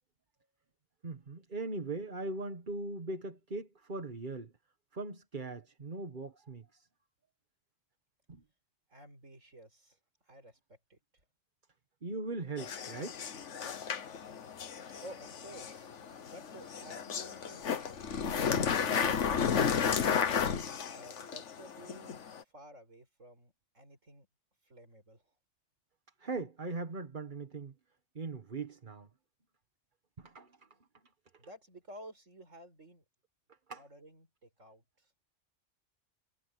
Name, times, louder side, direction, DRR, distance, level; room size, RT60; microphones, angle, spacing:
voice 1, 1.0-4.5 4.9-6.9 8.3-8.4 12.0-13.2 26.2-27.7 28.1-29.1 30.2-30.5 33.7-33.8, right 3 dB, 40° right, 1.6 m, -40 dB
voice 2, 8.9-10.0 10.3-11.0 15.0-15.9 16.2-18.4 20.9-22.2 22.4-24.3 24.6-25.2 31.4-33.0 33.7-35.1, right 1 dB, 90° right, 6.8 m, -53 dB
sound 1, 12.6-22.4, left 7 dB, 75° left, 1.4 m, -33 dB
omnidirectional pair, 1.3 m